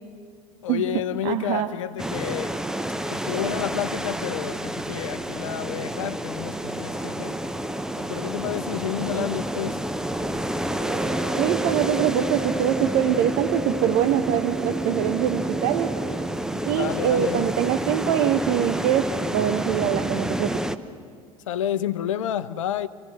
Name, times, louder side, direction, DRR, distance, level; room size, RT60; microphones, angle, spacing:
voice 1, 0.6-2.5 3.1-7.4 7.9-9.8 16.7-17.5 21.5-22.9, left 10 dB, 65° left, 0.8 m, -30 dB
voice 2, 1.2-1.7 9.1-9.3 11.4-15.9 16.6-19.1 19.3-20.6, right 10 dB, 50° right, 0.9 m, -23 dB
sound 1, 2.0-20.8, right 1 dB, 5° right, 0.9 m, -29 dB
Brass instrument, 10.7-16.3, right 3 dB, 30° right, 3.6 m, -31 dB
27.5 x 16.5 x 6.7 m
figure-of-eight pair, 70°, 18 cm